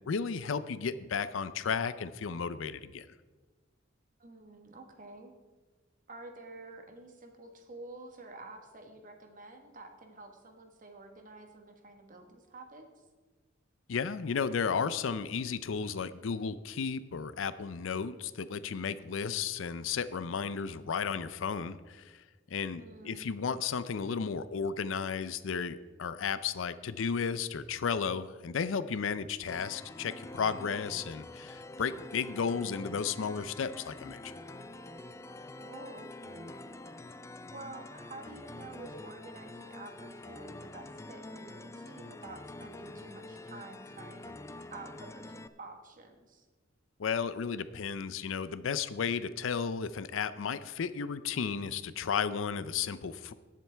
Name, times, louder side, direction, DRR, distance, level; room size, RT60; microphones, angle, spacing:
voice 1, 0.1-3.1 13.9-22.1 22.5-34.4 47.0-53.3, left 6 dB, 80° left, 14 dB, 0.5 m, -33 dB
voice 2, 4.2-5.3 6.1-12.8 22.7-23.3 35.5-36.5 37.5-44.4 44.7-46.4, right 2 dB, 45° right, 5 dB, 1.3 m, -49 dB
sound 1, 29.5-45.5, left 2 dB, 15° left, 0.3 m, -46 dB
18.0 x 7.6 x 3.4 m, 1.3 s
head